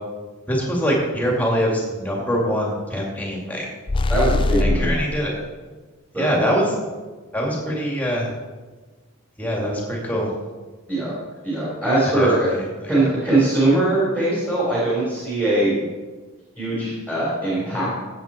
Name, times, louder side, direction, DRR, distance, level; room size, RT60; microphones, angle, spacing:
voice 1, 0.5-3.7 4.6-5.4 6.1-6.7 7.3-8.3 9.4-10.3 12.1-12.9, equal, 5° left, -2 dB, 2.5 m, -23 dB
sound 1, 3.9-5.1, left 2 dB, 25° left, 0.4 m, -21 dB
voice 2, 4.1-4.9 6.1-6.4 10.9-11.1 11.4-12.5 12.9-15.7 16.6-17.9, right 2 dB, 10° right, -9 dB, 4.2 m, -21 dB
15.5 x 7.8 x 4.5 m, 1.3 s
head